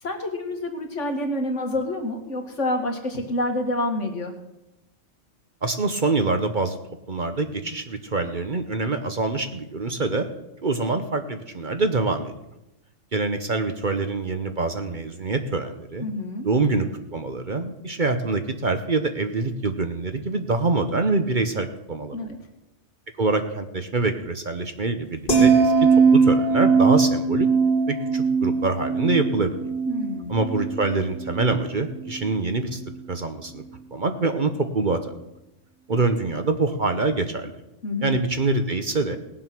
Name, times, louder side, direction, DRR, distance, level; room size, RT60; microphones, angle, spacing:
voice 1, 0.0-4.4 16.0-16.5 22.1-22.4 29.9-30.4 37.8-38.1, left 1 dB, 70° left, 3 dB, 2.3 m, -28 dB
voice 2, 5.6-6.8 7.1-10.3 10.6-12.3 13.1-16.1 16.4-22.3 23.2-27.5 27.9-29.6 30.3-32.8 33.1-33.6 33.9-35.0 35.9-37.5 38.0-39.2, right 3 dB, 40° right, 7 dB, 1.0 m, -25 dB
sound 1, 25.3-31.6 31.9-32.2, right 5 dB, 50° left, 2.9 m, -20 dB
19.0 x 7.7 x 6.0 m, 0.93 s
omnidirectional pair, 1.3 m